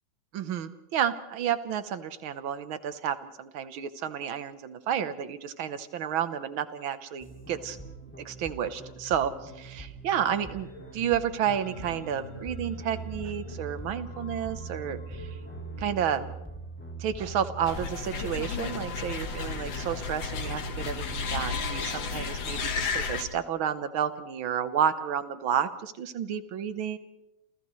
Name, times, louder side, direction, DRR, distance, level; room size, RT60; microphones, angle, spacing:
voice 1, 0.3-7.8 8.3-10.7 10.9-15.3 15.8-16.3 17.0-27.0, right 9 dB, 85° right, 11 dB, 1.8 m, -31 dB
sound 1, 7.2-21.8, right 3 dB, 5° left, 2.1 m, -43 dB
sound 2, 10.5-16.3, left 2 dB, 85° left, 5.8 m, -47 dB
sound 3, 17.6-23.2, left 5 dB, 70° left, 2.2 m, -33 dB
29.0 x 28.0 x 3.2 m, 0.92 s
omnidirectional pair, 2.2 m